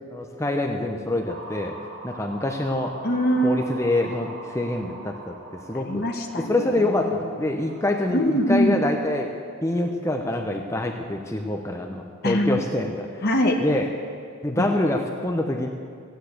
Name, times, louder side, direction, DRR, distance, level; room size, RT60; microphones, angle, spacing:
voice 1, 0.1-1.8 2.0-2.9 3.4-5.3 5.7-6.0 6.5-9.3 9.6-13.2 13.6-13.9 14.4-15.7, left 1 dB, 15° left, 3 dB, 0.8 m, -25 dB
sound 1, 1.3-8.7, right 2 dB, 65° right, 1.9 m, -42 dB
voice 2, 3.0-3.6 5.7-7.4 8.1-8.9 12.2-12.6 13.2-13.6 14.5-14.7, equal, 45° left, 1 dB, 1.2 m, -23 dB
15.5 x 10.5 x 8.1 m, 2.3 s
head